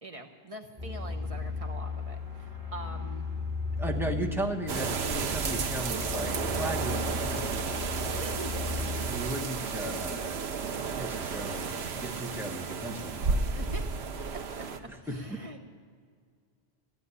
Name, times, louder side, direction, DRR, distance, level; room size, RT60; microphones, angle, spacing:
voice 1, 0.0-3.3 8.2-8.5 13.6-13.8 15.0-15.7, right 2 dB, 35° right, 3 dB, 1.2 m, -43 dB
sound 1, 0.8-8.9, left 4 dB, 50° right, 2.7 m, -36 dB
voice 2, 3.8-7.8 9.0-10.6 10.9-13.4 14.9-15.4, right 1 dB, ahead, 0 dB, 1.2 m, -36 dB
sound 2, 4.7-14.8, right 5 dB, 90° right, 1.1 m, -32 dB
15.5 x 8.4 x 9.8 m, 2.1 s
omnidirectional pair, 1.0 m